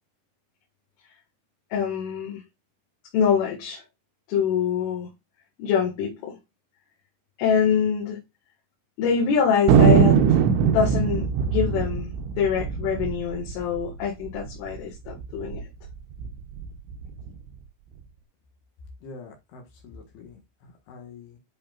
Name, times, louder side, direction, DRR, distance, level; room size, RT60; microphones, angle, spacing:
voice 1, 1.7-2.4 3.1-3.8 4.3-5.1 5.6-6.4 7.4-8.2 9.0-10.4 10.7-15.6, left 7 dB, 80° left, 4.4 m, -25 dB
Thunder, 9.7-14.5 14.8-14.9 15.1-15.6 16.1-17.3, right 7 dB, 75° right, 2.9 m, -21 dB
voice 2, 19.0-21.4, left 4 dB, 65° left, 3.1 m, -45 dB
10.5 x 5.5 x 2.5 m
omnidirectional pair, 5.7 m